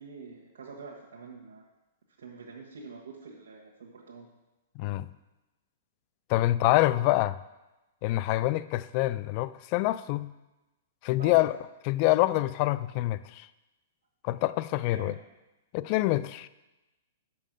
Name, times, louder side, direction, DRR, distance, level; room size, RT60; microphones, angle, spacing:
voice 1, 0.0-1.6 2.2-4.3 11.2-11.5 14.9-15.1, right 4 dB, 80° right, -2 dB, 1.3 m, -45 dB
voice 2, 4.8-5.1 6.3-7.4 8.0-10.3 11.0-11.6 11.9-13.5 14.2-15.1 15.7-16.5, left 16 dB, 45° left, 17 dB, 0.3 m, -26 dB
6.3 x 5.4 x 6.5 m, 1.0 s
hypercardioid pair, 135°, 0 cm